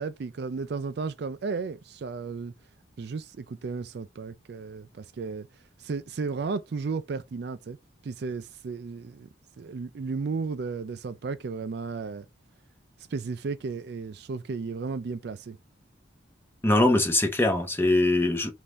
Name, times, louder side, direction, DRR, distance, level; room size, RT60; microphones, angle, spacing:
voice 1, 0.0-2.5 3.0-5.5 5.8-7.8 8.0-9.3 9.6-12.3 13.1-15.6, right 4 dB, 60° right, 0.4 m, -34 dB
voice 2, 16.6-18.5, left 2 dB, 10° left, 0.9 m, -22 dB
5.5 x 2.6 x 3.0 m
head